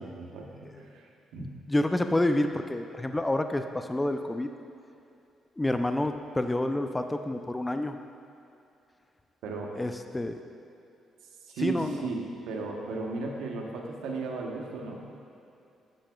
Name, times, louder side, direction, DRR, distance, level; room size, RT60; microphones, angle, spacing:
voice 1, 0.0-1.5 9.4-9.7 11.4-15.0, right 3 dB, 90° right, 0 dB, 0.9 m, -36 dB
voice 2, 1.4-4.5 5.6-8.0 9.8-10.4 11.6-12.0, left 1 dB, 15° left, 7 dB, 0.3 m, -28 dB
10.5 x 6.9 x 2.3 m, 2.7 s
cardioid pair, 90°, 0 cm